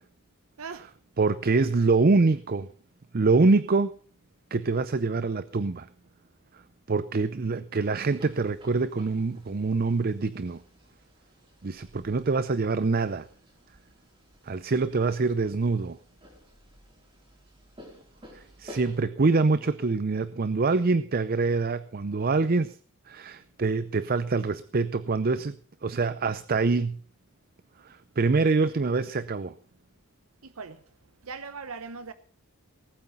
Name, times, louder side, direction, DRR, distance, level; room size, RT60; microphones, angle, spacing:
voice 1, 1.2-2.7 3.1-3.9 4.5-5.9 6.9-10.6 11.6-13.2 14.5-16.0 18.3-22.8 23.1-25.6 25.8-27.0 27.9-29.5, right 3 dB, 45° right, 0.5 m, -25 dB
sound 1, 7.8-19.0, equal, 25° right, 4.8 m, -53 dB
voice 2, 30.4-30.8 31.2-32.1, right 5 dB, 75° right, 0.9 m, -39 dB
19.0 x 8.6 x 5.5 m
head